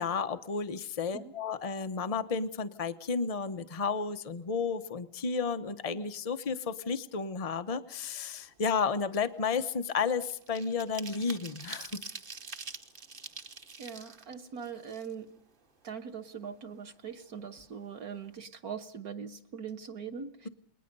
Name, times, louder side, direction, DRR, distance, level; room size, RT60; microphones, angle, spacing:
voice 1, 0.0-12.0, left 5 dB, 65° left, 11 dB, 0.3 m, -32 dB
sound 1, 8.5-8.7 9.1-15.5 15.9-16.0 16.3-17.3 17.6-17.7 18.0-18.3, right 4 dB, 35° right, 1.1 m, -46 dB
voice 2, 13.8-15.3 15.8-20.5, right 6 dB, 50° right, 6 dB, 1.6 m, -41 dB
29.0 x 21.0 x 5.4 m, 0.63 s
omnidirectional pair, 2.2 m